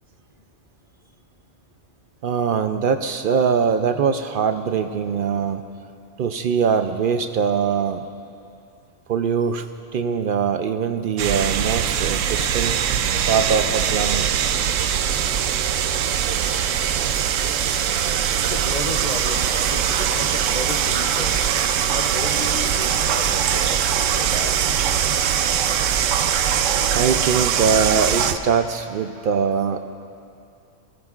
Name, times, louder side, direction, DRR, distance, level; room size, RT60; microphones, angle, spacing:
voice 1, 2.2-5.6 6.2-8.0 9.1-9.7 9.9-12.9 13.3-14.3 26.9-29.8, right 6 dB, 60° right, 8 dB, 0.5 m, -22 dB
sound 1, 11.2-28.3, right 8 dB, 80° right, 0.9 m, -21 dB
voice 2, 18.4-21.4 21.9-24.6, left 4 dB, 50° left, 4 dB, 0.5 m, -34 dB
20.5 x 17.0 x 2.4 m, 2.5 s
omnidirectional pair, 1.3 m